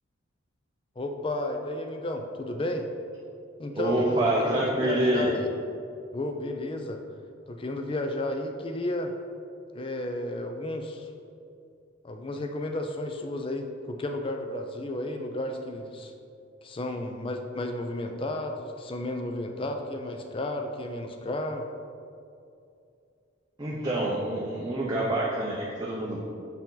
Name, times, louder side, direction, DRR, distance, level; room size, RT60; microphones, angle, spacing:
voice 1, 1.0-2.9 3.6-4.2 4.5-5.5 6.1-7.0 7.5-9.1 9.7-11.1 12.0-16.1 16.6-21.6, left 1 dB, 25° left, 4 dB, 0.4 m, -32 dB
voice 2, 3.7-5.3 23.6-26.2, right 1 dB, 20° right, -5 dB, 0.6 m, -26 dB
7.1 x 4.4 x 3.9 m, 2.5 s
head